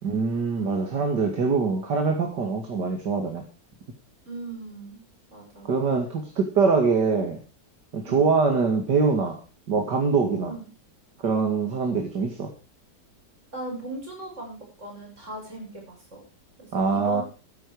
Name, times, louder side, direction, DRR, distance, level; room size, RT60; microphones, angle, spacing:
voice 1, 0.0-3.4 5.7-7.4 7.9-9.4 9.7-10.5 11.2-12.5 16.7-17.2, right 4 dB, 80° right, 3 dB, 2.8 m, -23 dB
voice 2, 4.3-5.0 5.3-5.7 8.0-8.2 10.4-10.7 13.5-16.2 16.6-17.2, right 2 dB, 45° right, 0 dB, 7.2 m, -38 dB
13.5 x 11.5 x 4.7 m, 0.33 s
omnidirectional pair, 1.8 m